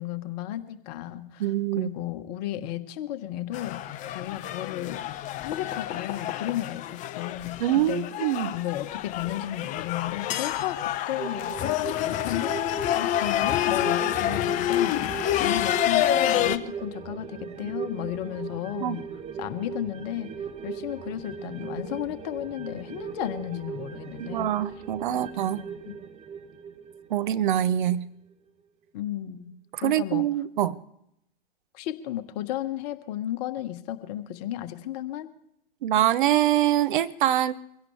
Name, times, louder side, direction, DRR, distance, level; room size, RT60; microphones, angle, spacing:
voice 1, 0.0-5.0 5.4-8.1 8.5-11.6 11.9-12.6 12.9-19.0 19.4-20.3 20.6-24.5 25.1-25.9 28.9-29.5 29.8-30.3 31.7-35.3, left 13 dB, 45° left, 1.4 m, -34 dB
voice 2, 1.4-1.9 7.6-8.5 18.8-19.0 24.2-25.6 27.1-28.1 29.7-30.8 35.8-37.6, right 12 dB, 55° right, 0.9 m, -24 dB
sound 1, 3.5-16.6, left 12 dB, 25° left, 0.7 m, -28 dB
sound 2, 11.2-28.0 28.3-28.4, right 6 dB, 20° right, 1.0 m, -39 dB
24.0 x 16.5 x 3.4 m
figure-of-eight pair, 110°, 29 cm